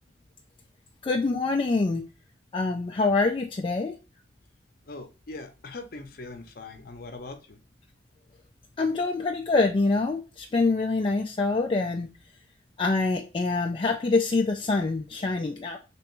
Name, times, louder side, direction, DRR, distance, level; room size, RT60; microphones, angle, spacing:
voice 1, 1.0-2.0 2.5-4.0 8.8-12.1 12.8-15.8, left 3 dB, 30° left, 2 dB, 0.3 m, -25 dB
voice 2, 4.8-7.6, left 3 dB, 55° left, 6 dB, 0.7 m, -41 dB
3.4 x 3.0 x 3.0 m, 0.31 s
head